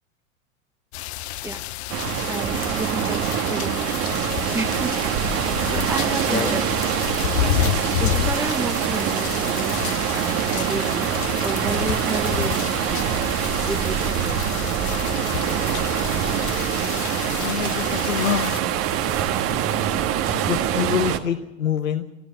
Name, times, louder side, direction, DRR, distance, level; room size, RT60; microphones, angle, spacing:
sound 1, 0.9-18.6, left 14 dB, 55° left, 1.0 m, -30 dB
sound 2, 1.9-21.2, right 10 dB, 35° right, 1.5 m, -24 dB
voice 1, 2.3-5.0 5.3-6.7 7.4-11.1 11.4-13.2 13.6-15.8, right 3 dB, 5° right, 13 dB, 1.1 m, -32 dB
voice 2, 6.3-6.6 17.3-18.5 20.3-22.0, left 8 dB, 80° left, 7 dB, 1.2 m, -26 dB
26.0 x 13.5 x 7.5 m, 1.1 s
figure-of-eight pair, 90°, 40 cm